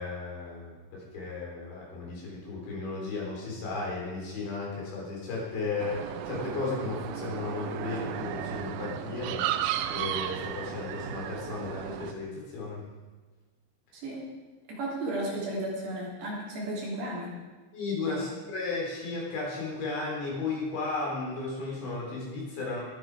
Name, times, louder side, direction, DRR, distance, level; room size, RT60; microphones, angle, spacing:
voice 1, 0.0-9.5 9.9-12.8 17.7-22.8, left 3 dB, 60° left, -3 dB, 6.1 m, -34 dB
sound 1, 5.8-12.1, right 11 dB, 85° right, 3.3 m, -34 dB
voice 2, 13.9-14.2 14.7-17.3 18.1-18.2, right 1 dB, 60° right, -4 dB, 4.9 m, -34 dB
21.0 x 8.9 x 4.8 m, 1.3 s
omnidirectional pair, 5.9 m